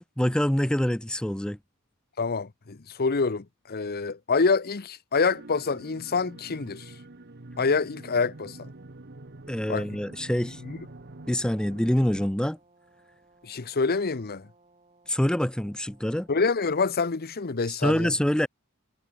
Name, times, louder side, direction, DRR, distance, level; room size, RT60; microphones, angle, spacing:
voice 1, 0.0-1.6 9.5-10.6 11.3-12.6 15.1-16.3 17.7-18.5, equal, 5° left, 0.4 m, -25 dB
voice 2, 2.2-6.8 7.6-8.6 9.7-9.8 10.7-10.8 13.4-14.5 16.3-18.1, left 4 dB, 45° left, 0.8 m, -26 dB
sound 1, 5.3-12.3, right 2 dB, 50° right, 1.2 m, -46 dB
Brass instrument, 10.2-16.5, right 3 dB, 30° right, 6.8 m, -62 dB
head